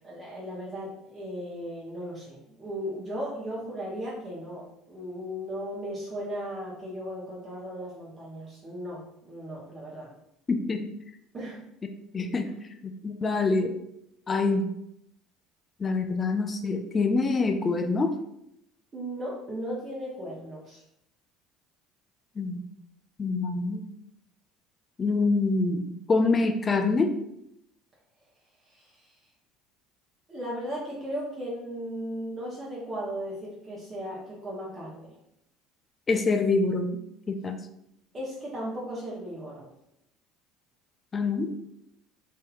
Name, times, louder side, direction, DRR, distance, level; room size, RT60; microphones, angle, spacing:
voice 1, 0.0-10.1 11.3-11.6 12.5-12.6 18.9-20.8 28.7-29.1 30.3-35.2 38.1-39.7, equal, 30° right, -6 dB, 0.9 m, -36 dB
voice 2, 10.5-10.8 12.1-12.5 13.0-13.7 14.3-14.7 15.8-18.1 22.4-22.7 23.2-23.8 25.0-27.1 36.1-37.0 37.3-37.6 41.1-41.5, left 3 dB, 30° left, 7 dB, 0.3 m, -25 dB
3.3 x 2.7 x 2.4 m, 0.79 s
figure-of-eight pair, 60°, 0 cm